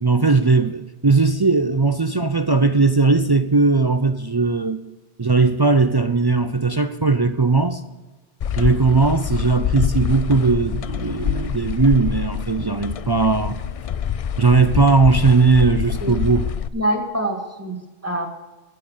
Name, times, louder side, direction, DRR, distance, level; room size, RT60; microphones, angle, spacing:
voice 1, 0.0-4.8 5.2-7.8 8.6-13.6 14.4-16.5, right 4 dB, 40° right, 9 dB, 0.3 m, -18 dB
sound 1, 8.4-16.7, left 8 dB, 70° left, 0.3 m, -26 dB
voice 2, 16.7-18.3, right 1 dB, 15° right, 3 dB, 2.0 m, -25 dB
16.0 x 7.6 x 6.5 m, 1.2 s
omnidirectional pair, 1.2 m